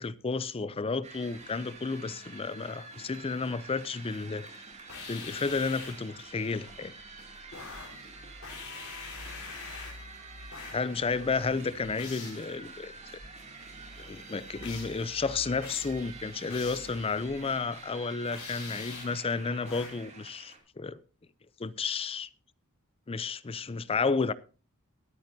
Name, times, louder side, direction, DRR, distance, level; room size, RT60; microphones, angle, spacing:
voice 1, 0.0-4.6 5.1-6.9 9.7-9.8 10.7-12.9 14.0-21.0 21.6-22.3 23.1-24.3, left 4 dB, 25° left, 0.4 m, -32 dB
sound 1, 1.0-20.6, right 3 dB, 30° right, 2.5 m, -48 dB
sound 2, 4.9-6.1 7.5-8.0 8.4-10.1 10.5-10.9 12.0-12.5 14.6-15.0 15.6-16.0 16.5-17.0 18.3-19.2 19.7-20.1, left 5 dB, 70° left, 4.1 m, -44 dB
sound 3, 6.7-18.0, equal, 45° right, 1.2 m, -52 dB
22.5 x 8.8 x 2.7 m
head